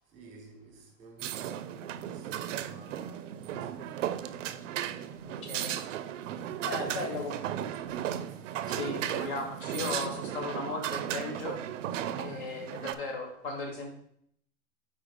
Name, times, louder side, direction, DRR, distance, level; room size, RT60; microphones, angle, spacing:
voice 1, 0.1-4.7 6.7-8.5 9.0-9.3, right 3 dB, 20° right, 1.2 m, -53 dB
sound 1, 1.2-12.9, right 10 dB, 70° right, 0.5 m, -35 dB
voice 2, 5.2-5.8 6.6-7.4 8.7-11.6 12.2-13.9, left 3 dB, 40° left, 1.4 m, -36 dB
5.1 x 4.3 x 5.1 m
supercardioid pair, 165°, 38 cm